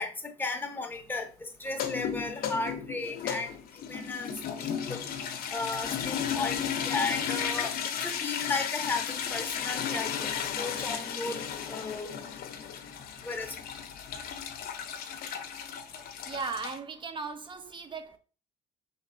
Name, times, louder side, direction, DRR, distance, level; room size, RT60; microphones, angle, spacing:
voice 1, 0.0-3.5 3.9-5.0 5.5-7.7 8.0-12.2 13.2-13.6, left 3 dB, 10° left, 0.8 m, -35 dB
sound 1, 1.7-16.8, left 8 dB, 65° left, 0.7 m, -34 dB
voice 2, 16.3-18.2, right 5 dB, 30° right, 0.5 m, -37 dB
5.2 x 3.2 x 2.4 m
cardioid pair, 110°, 17 cm